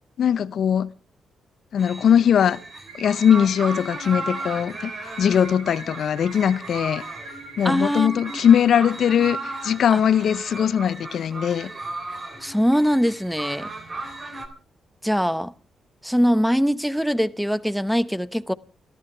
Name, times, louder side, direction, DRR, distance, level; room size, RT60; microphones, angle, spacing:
voice 1, 0.2-0.9 1.7-2.6 2.9-4.9 5.2-7.0 7.6-11.7, left 8 dB, 65° left, 0.7 m, -20 dB
sound 1, 1.8-14.5, right 2 dB, 45° right, 3.6 m, -36 dB
sound 2, 2.9-8.7, right 3 dB, 90° right, 5.6 m, -41 dB
voice 2, 7.6-8.4 9.9-10.0 12.4-13.7 15.0-15.5 16.0-18.5, equal, ahead, 0.9 m, -22 dB
28.0 x 11.5 x 3.4 m
supercardioid pair, 50°, 0 cm